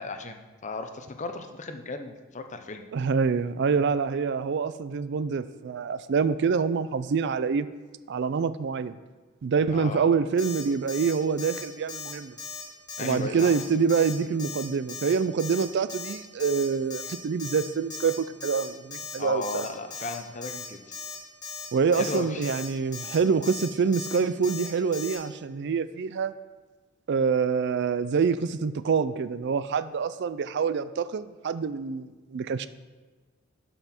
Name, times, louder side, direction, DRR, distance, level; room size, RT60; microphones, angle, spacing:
voice 1, 0.0-2.8 9.7-10.1 13.0-13.5 19.2-20.8 21.9-22.5, left 3 dB, 35° left, 7 dB, 0.7 m, -35 dB
voice 2, 2.9-7.7 8.1-9.0 9.4-12.4 13.0-19.7 21.7-26.3 27.1-32.7, right 5 dB, 55° right, 14 dB, 0.4 m, -26 dB
Alarm, 10.4-10.6 10.9-11.1 11.4-11.6 11.9-12.1 12.4-12.6 12.9-13.1 13.4-13.6 13.9-14.1 14.4-14.6 14.9-15.1 15.4-15.6 15.9-16.1 16.4-16.6 16.9-17.1 17.4-17.6 17.9-18.1 18.4-18.6 18.9-19.1 19.4-19.6 19.9-20.1 20.4-20.6 20.9-21.1 21.4-21.7 21.9-22.2 22.4-22.7 22.9-23.2 23.4-23.7 23.9-24.2 24.4-24.7 24.9-25.2, left 6 dB, 20° left, 1.8 m, -38 dB
12.0 x 5.5 x 4.3 m, 1.3 s
head